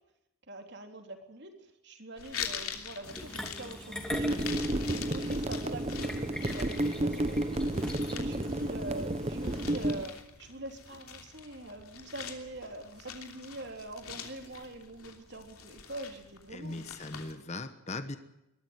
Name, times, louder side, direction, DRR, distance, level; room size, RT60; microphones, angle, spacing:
voice 1, 0.5-1.5 1.8-7.6 8.1-16.8, right 1 dB, 50° right, 5 dB, 3.3 m, -44 dB
sound 1, 2.2-17.3, left 7 dB, 85° left, 3.0 m, -45 dB
sound 2, 3.0-10.2, equal, 5° left, 2.8 m, -44 dB
sound 3, 4.1-10.0, right 1 dB, 30° right, 0.9 m, -31 dB
voice 2, 16.5-18.2, left 2 dB, 30° left, 10 dB, 1.2 m, -39 dB
22.0 x 13.0 x 9.6 m, 0.90 s
head